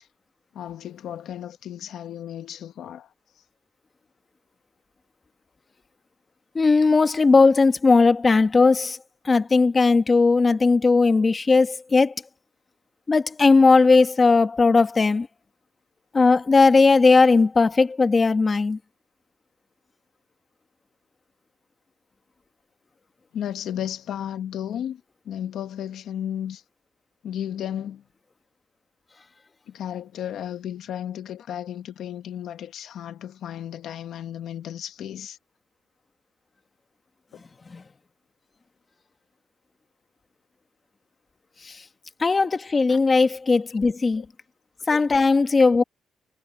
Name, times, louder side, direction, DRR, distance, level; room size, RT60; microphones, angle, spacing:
voice 1, 0.5-3.1 23.3-26.6 27.2-28.0 29.7-35.4 41.6-41.8 42.9-43.0 43.7-43.8 44.2-44.3 44.9-45.0, left 10 dB, 75° left, 1.5 m, -34 dB
voice 2, 6.5-9.0 9.2-12.1 13.1-15.3 16.1-18.8 37.7-37.8 41.6-41.8 42.2-44.2 44.9-45.8, left 4 dB, 30° left, 1.6 m, -18 dB
cardioid pair, 90°, 0 cm